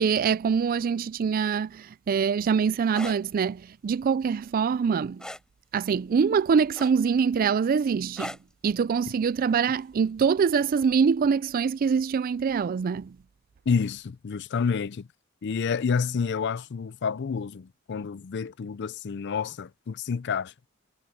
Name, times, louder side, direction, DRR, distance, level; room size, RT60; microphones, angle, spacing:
voice 1, 0.0-5.3 5.7-8.4 8.6-13.2, right 6 dB, 45° right, 0.3 m, -24 dB
sound 1, 2.8-3.2 5.2-5.5 6.8-7.2 8.2-8.5 9.9-10.1, left 1 dB, 5° left, 4.1 m, -37 dB
voice 2, 13.7-15.1 15.4-20.5, left 5 dB, 55° left, 0.5 m, -29 dB
head